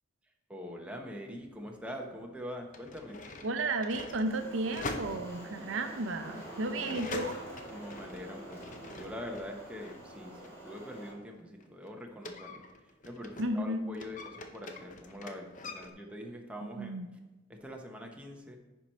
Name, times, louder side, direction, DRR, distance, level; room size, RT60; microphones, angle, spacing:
voice 1, 0.5-3.2 6.7-7.0 7.7-12.6 13.0-17.0 17.5-18.6, equal, 5° right, 1 dB, 0.9 m, -44 dB
sound 1, 1.6-1.7 2.5-9.5 9.8-13.6 13.9-15.9, left 2 dB, 40° left, 0.7 m, -44 dB
voice 2, 3.4-7.4 13.4-13.9 16.6-17.2, right 2 dB, 70° right, 8 dB, 0.6 m, -33 dB
sound 2, 4.2-11.1, right 1 dB, 15° left, 2.4 m, -47 dB
10.0 x 4.5 x 4.3 m, 1.1 s
head